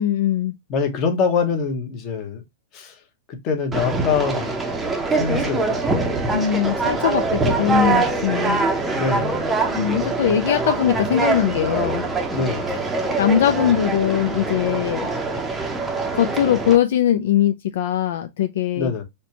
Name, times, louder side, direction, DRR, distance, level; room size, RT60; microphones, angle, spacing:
voice 1, 0.0-0.5 6.3-8.6 9.7-12.1 13.2-15.0 16.1-18.9, left 10 dB, 70° left, 0.3 m, -21 dB
voice 2, 0.7-2.4 2.7-3.0 3.3-4.5 5.1-6.1 9.0-9.4 12.3-12.7 18.8-19.0, left 5 dB, 30° left, 0.9 m, -24 dB
Conversation, 3.7-16.8, right 3 dB, 10° right, 0.6 m, -23 dB
4.3 x 2.2 x 2.7 m
hypercardioid pair, 150°, 0 cm